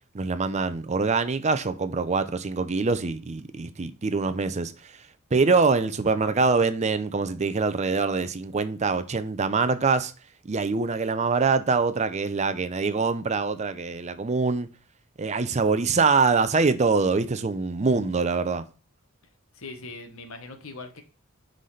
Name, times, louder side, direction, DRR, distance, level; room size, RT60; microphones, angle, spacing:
voice 1, 0.1-5.0 5.3-10.1 10.4-14.7 15.2-18.6, right 4 dB, 30° right, 0.5 m, -24 dB
voice 2, 19.5-21.0, left 3 dB, 70° left, 1.2 m, -40 dB
9.6 x 4.0 x 3.2 m
head